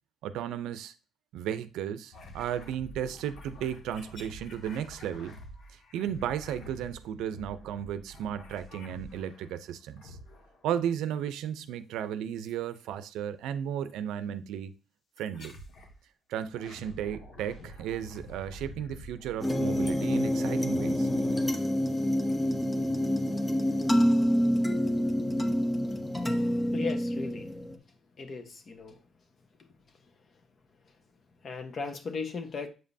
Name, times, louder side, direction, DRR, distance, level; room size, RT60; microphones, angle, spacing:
voice 1, 0.2-0.9 1.3-5.4 5.9-10.2 10.6-14.7 15.2-15.6 16.3-21.1, right 9 dB, 90° right, 0.5 m, -34 dB
sound 1, 2.1-9.6 10.0-10.7 12.4-12.9 13.9-14.0 15.2-16.0 16.4-20.8, equal, 70° left, 1.7 m, -48 dB
sound 2, 19.4-27.8, equal, 15° left, 0.9 m, -27 dB
voice 2, 26.7-27.5 28.2-29.0 31.4-32.7, left 4 dB, 50° left, 1.2 m, -36 dB
7.8 x 5.2 x 2.7 m
cardioid pair, 90°, 0 cm